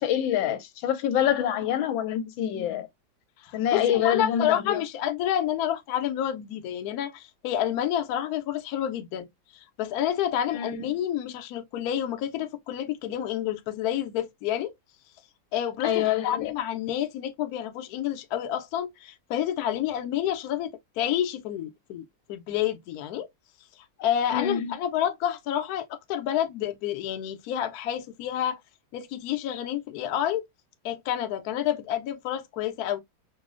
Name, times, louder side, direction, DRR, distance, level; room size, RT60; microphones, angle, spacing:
voice 1, 0.0-2.9 3.5-4.8 10.5-10.9 15.8-16.5 24.3-24.7 29.5-29.6, left 10 dB, 85° left, 1.4 m, -26 dB
voice 2, 3.4-9.3 9.5-14.7 15.5-23.3 24.0-28.6 28.9-30.4 30.8-33.0, left 10 dB, 70° left, 0.9 m, -29 dB
5.2 x 2.0 x 2.3 m
omnidirectional pair, 2.1 m